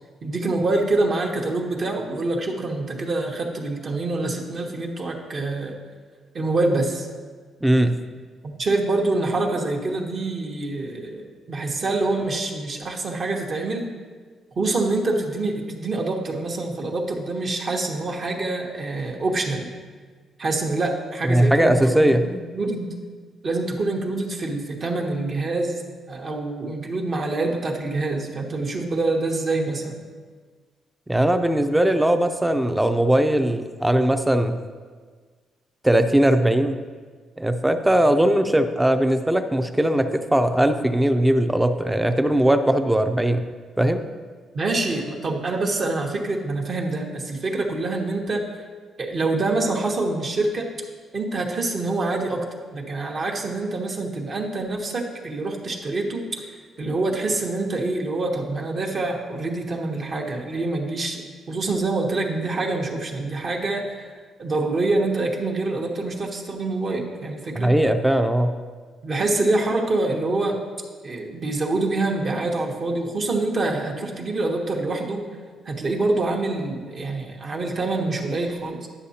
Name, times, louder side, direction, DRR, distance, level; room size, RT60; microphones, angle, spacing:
voice 1, 0.2-5.8 6.3-7.1 8.4-13.9 14.6-19.7 20.4-22.9 23.4-30.0 44.5-48.6 49.0-50.7 51.1-56.5 56.8-64.1 64.4-67.7 69.0-70.6 71.0-75.2 75.6-78.9, right 2 dB, 45° right, 1 dB, 1.0 m, -26 dB
voice 2, 7.6-8.0 21.2-22.2 31.1-34.6 35.8-36.8 37.4-43.4 43.8-44.0 67.6-68.5, right 1 dB, 5° right, 8 dB, 0.5 m, -19 dB
9.9 x 6.2 x 2.8 m, 1.5 s
cardioid pair, 90°, 0 cm